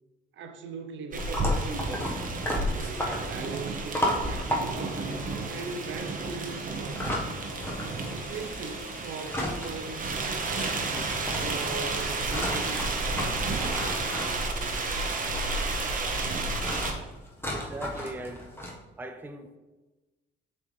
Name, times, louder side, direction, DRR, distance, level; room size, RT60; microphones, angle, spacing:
voice 1, 0.3-1.5 2.8-5.0 5.5-7.3 8.1-10.9 11.4-15.1, right 4 dB, 70° right, 0.7 m, -40 dB
sound 1, 1.1-16.9, right 3 dB, 45° right, 0.9 m, -31 dB
sound 2, 1.2-8.0 8.3-9.7 10.0-10.1 10.4-18.7, left 1 dB, 10° left, 1.2 m, -34 dB
Harmonica, 7.4-12.9, left 4 dB, 90° left, 0.7 m, -51 dB
voice 2, 17.5-18.5 19.0-19.6, right 1 dB, 10° right, 0.4 m, -39 dB
6.9 x 4.2 x 3.2 m
cardioid pair, 90°, 20 cm